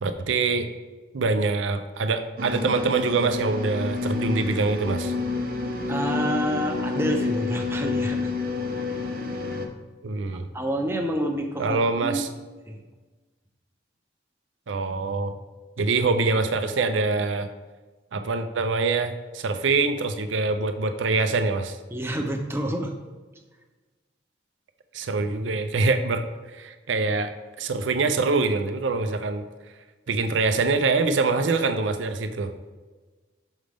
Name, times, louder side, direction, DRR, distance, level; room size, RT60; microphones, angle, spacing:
voice 1, 0.0-0.7 1.1-5.1 10.0-10.5 11.6-12.3 14.7-15.3 15.8-17.5 18.1-21.8 24.9-26.3 26.5-27.3 27.6-29.4 30.1-32.5, right 3 dB, 85° right, 8 dB, 0.5 m, -24 dB
sound 1, 2.4-9.7, left 3 dB, 50° right, 0.7 m, -29 dB
voice 2, 5.9-8.3 10.5-12.2 12.7-12.8 21.9-22.9, equal, 15° right, 3 dB, 0.6 m, -28 dB
6.3 x 5.1 x 3.4 m, 1.3 s
head